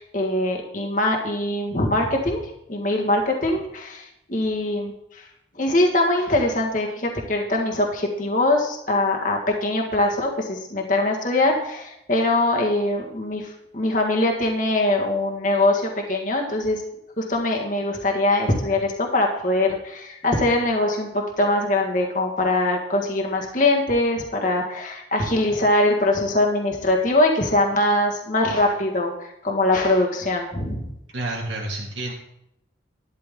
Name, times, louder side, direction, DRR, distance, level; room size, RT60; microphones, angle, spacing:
voice 1, 0.0-4.0 4.3-4.9 5.6-13.5 13.7-16.8 17.2-29.1 29.4-30.9, left 1 dB, 45° left, 0 dB, 1.6 m, -22 dB
voice 2, 31.1-32.1, right 2 dB, 80° right, -2 dB, 2.1 m, -29 dB
12.0 x 10.0 x 3.7 m, 0.80 s
head